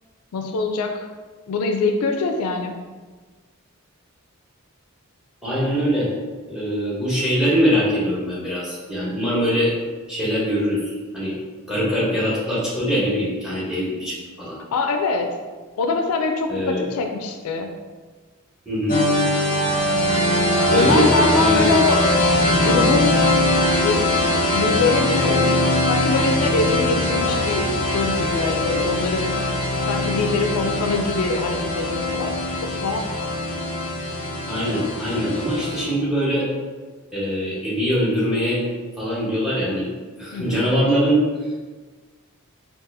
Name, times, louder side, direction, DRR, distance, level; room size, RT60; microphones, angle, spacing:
voice 1, 0.3-1.1 1.5-2.8 14.7-15.3 15.8-17.7 20.7-22.1 22.5-23.2 23.8-24.1 24.5-25.5 25.9-29.3 29.9-32.3 32.8-33.0 40.3-40.6, left 3 dB, 80° left, 5 dB, 0.3 m, -23 dB
voice 2, 5.4-6.1 6.5-9.7 10.1-11.3 11.7-14.6 16.5-16.8 18.7-19.0 20.6-21.7 34.5-36.5 37.1-38.6 39.0-39.9 40.2-41.2, equal, 5° right, -7 dB, 1.0 m, -22 dB
sound 1, 18.9-35.8, left 1 dB, 40° left, 0.6 m, -21 dB
3.9 x 2.4 x 2.6 m, 1.4 s
head